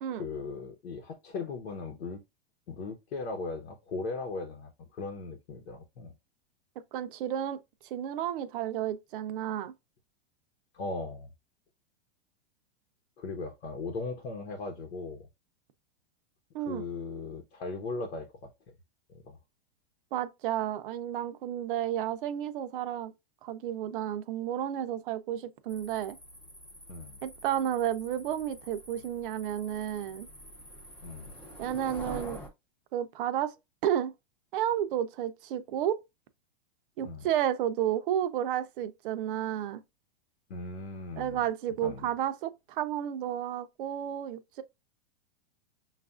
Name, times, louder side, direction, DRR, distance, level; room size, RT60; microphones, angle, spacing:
voice 1, 0.1-2.2 2.7-6.1 10.7-11.3 13.2-15.3 16.7-18.5 19.2-19.4 26.9-27.2 31.0-31.3 37.0-37.2 40.5-41.4 41.8-42.1, left 3 dB, 85° left, 1.0 m, -38 dB
voice 2, 6.9-7.6 7.9-9.7 16.5-16.8 20.1-23.1 23.4-26.2 27.2-30.3 31.6-32.4 32.9-33.5 33.8-34.1 34.5-36.0 37.0-39.8 41.2-44.6, right 10 dB, 55° right, 0.6 m, -32 dB
sound 1, 25.7-32.5, equal, 5° left, 0.4 m, -47 dB
5.7 x 2.5 x 2.3 m
supercardioid pair, 150°, 32 cm